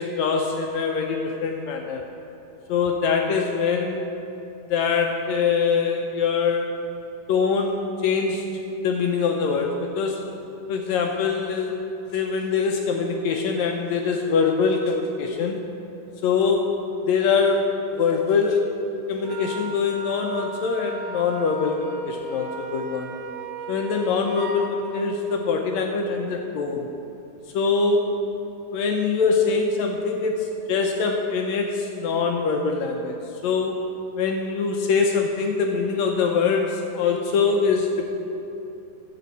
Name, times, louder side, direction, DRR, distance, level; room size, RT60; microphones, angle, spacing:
voice 1, 0.0-2.0 2.7-4.0 4.7-6.7 7.3-8.4 8.8-10.2 10.7-11.8 12.1-15.6 16.2-16.8 17.0-18.7 19.1-23.1 23.7-26.8 27.5-28.1 28.7-33.2 33.4-33.8 34.2-38.1, left 5 dB, 90° left, 2 dB, 1.6 m, -23 dB
Wind instrument woodwind instrument, 19.2-24.7, right 3 dB, 85° right, 1.6 m, -36 dB
12.5 x 7.5 x 4.0 m, 2.9 s
omnidirectional pair, 3.8 m